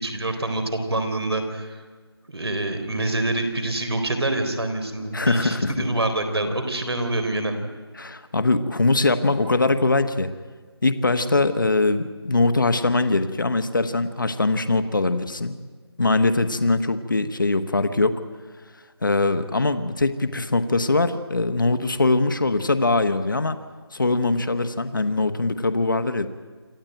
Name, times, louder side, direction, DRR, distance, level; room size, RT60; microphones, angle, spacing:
voice 1, 0.0-1.7 2.3-7.6, right 2 dB, 70° right, 7 dB, 3.9 m, -26 dB
voice 2, 5.1-5.7 8.0-10.3 10.8-15.5 16.0-18.1 19.0-23.6 23.9-26.3, left 2 dB, 50° left, 9 dB, 1.2 m, -22 dB
26.5 x 13.5 x 9.1 m, 1.5 s
figure-of-eight pair, 180°, 14 cm